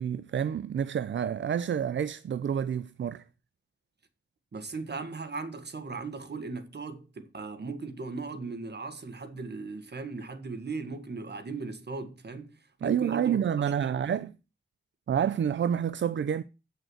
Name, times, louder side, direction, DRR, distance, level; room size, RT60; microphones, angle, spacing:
voice 1, 0.0-3.2 12.8-14.3 15.1-16.4, right 8 dB, 85° right, 0.5 m, -28 dB
voice 2, 4.5-13.4 13.8-14.0, right 4 dB, 65° right, 1.8 m, -38 dB
8.1 x 6.5 x 7.8 m
wide cardioid pair, 80°, 19 cm